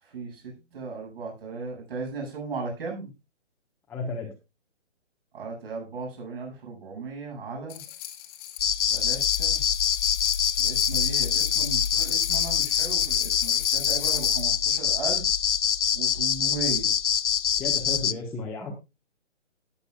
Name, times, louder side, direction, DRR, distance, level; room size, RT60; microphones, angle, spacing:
voice 1, 0.0-3.1 5.3-7.8 8.9-9.6 10.6-15.2 15.9-16.9, right 4 dB, 50° right, 0 dB, 7.8 m, -36 dB
voice 2, 3.9-4.3 17.6-18.7, left 3 dB, 5° left, -4 dB, 1.3 m, -33 dB
sound 1, 7.7-14.5, left 12 dB, 20° left, 1.8 m, -37 dB
sound 2, 8.6-18.1, left 8 dB, 75° left, 0.7 m, -24 dB
18.5 x 8.2 x 2.4 m, 0.25 s
hypercardioid pair, 155°, 36 cm